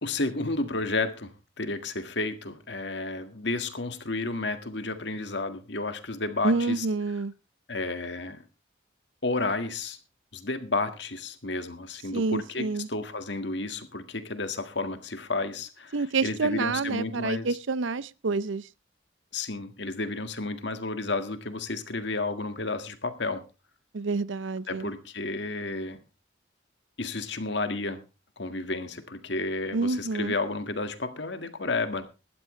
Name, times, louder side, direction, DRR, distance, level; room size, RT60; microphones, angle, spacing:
voice 1, 0.0-1.3 1.6-6.9 7.7-8.4 9.2-10.0 10.3-17.5 19.3-23.4 24.7-26.0 27.0-28.0 28.4-32.0, left 3 dB, 65° left, 1.8 m, -31 dB
voice 2, 6.4-7.3 12.1-12.9 15.9-18.6 23.9-24.9 29.7-30.3, right 3 dB, 75° right, 0.6 m, -28 dB
17.5 x 12.5 x 3.2 m
head